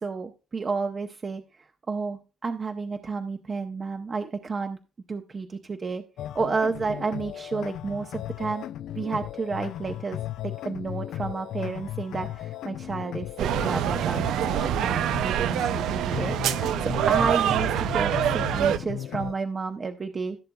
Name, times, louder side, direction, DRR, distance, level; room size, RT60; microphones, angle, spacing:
voice 1, 0.0-4.8 5.1-6.0 6.3-8.6 8.9-16.4 16.8-20.4, right 4 dB, 35° right, 6 dB, 0.6 m, -31 dB
sound 1, 6.2-19.3, left 12 dB, 80° left, 0.3 m, -36 dB
sound 2, 13.4-18.8, right 10 dB, 85° right, 0.4 m, -25 dB
14.5 x 6.6 x 2.3 m, 0.34 s
cardioid pair, 90°, 0 cm